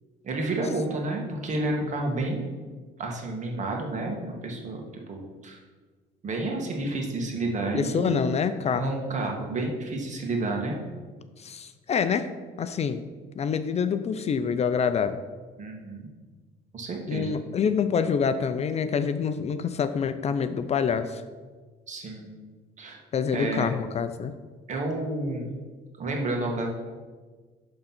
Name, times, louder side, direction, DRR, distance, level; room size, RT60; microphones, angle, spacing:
voice 1, 0.2-2.5 3.0-5.6 6.2-8.2 8.7-10.8 15.6-16.1 16.7-17.4 21.9-22.4 22.8-23.0 23.3-23.7 24.7-25.5 26.0-26.7, right 2 dB, 45° right, 1 dB, 1.9 m, -30 dB
voice 2, 7.7-8.9 11.4-12.3 12.6-13.0 13.4-15.2 17.1-21.2 23.1-24.3, left 6 dB, 40° left, 10 dB, 0.5 m, -26 dB
11.5 x 3.9 x 6.0 m, 1.4 s
cardioid pair, 110°, 17 cm